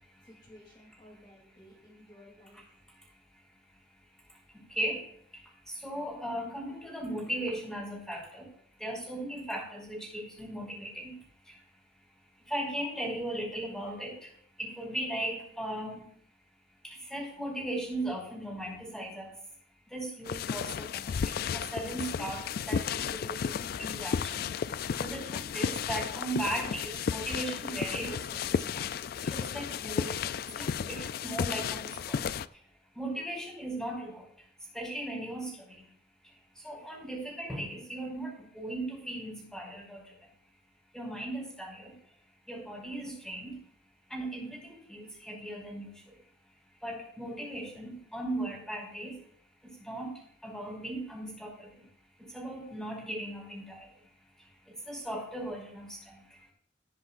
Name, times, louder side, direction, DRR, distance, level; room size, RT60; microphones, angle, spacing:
voice 1, 0.2-2.6, left 1 dB, 25° left, -5 dB, 2.8 m, -55 dB
voice 2, 5.8-8.5 8.8-11.1 12.5-14.1 14.6-16.0 17.1-19.3 19.9-20.7 21.5-22.8 23.1-23.5 23.8-24.5 25.0-28.2 29.2-30.1 30.6-31.8 32.1-32.2 32.9-34.2 34.7-35.5 36.6-40.0 40.9-41.9 42.5-43.5 44.1-45.9 46.8-49.1 49.9-50.1 50.4-51.7 52.3-53.8 54.9-55.9, right 1 dB, ahead, -4 dB, 4.9 m, -37 dB
sound 1, 20.3-32.5, left 7 dB, 55° left, 0.3 m, -33 dB
17.5 x 10.0 x 2.5 m, 0.64 s
head